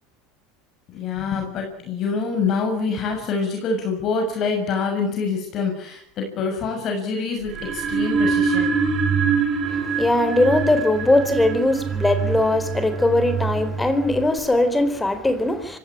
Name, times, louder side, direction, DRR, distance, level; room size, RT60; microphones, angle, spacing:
voice 1, 0.9-8.7, left 4 dB, 45° left, 6.6 m, -26 dB
sound 1, 7.5-14.4, right 5 dB, 35° right, 5.4 m, -24 dB
voice 2, 9.7-15.8, left 2 dB, 10° left, 4.2 m, -20 dB
25.0 x 16.5 x 8.8 m
supercardioid pair, 115°, 0 cm